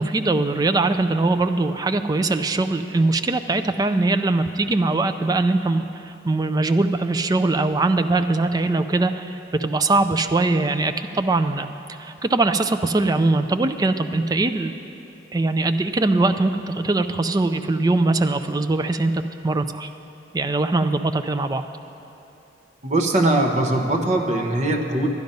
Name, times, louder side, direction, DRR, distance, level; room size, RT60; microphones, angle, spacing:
voice 1, 0.0-11.7 12.0-14.7 15.3-19.9 20.3-21.6, right 2 dB, 20° right, 8 dB, 0.4 m, -21 dB
voice 2, 22.8-25.1, right 2 dB, 40° right, 2 dB, 1.0 m, -21 dB
12.0 x 10.5 x 5.3 m, 2.9 s
head